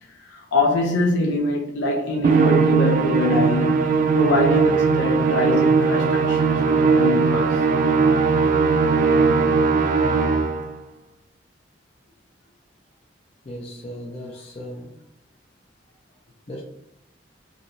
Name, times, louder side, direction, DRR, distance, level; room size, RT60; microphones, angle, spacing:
voice 1, 0.2-3.8 4.1-7.6, left 2 dB, 85° left, 0.6 m, -24 dB
Musical instrument, 2.2-10.7, right 5 dB, 45° right, 0.3 m, -19 dB
voice 2, 13.5-14.9 16.5-16.6, equal, 35° left, 0.5 m, -36 dB
3.0 x 2.7 x 2.6 m
head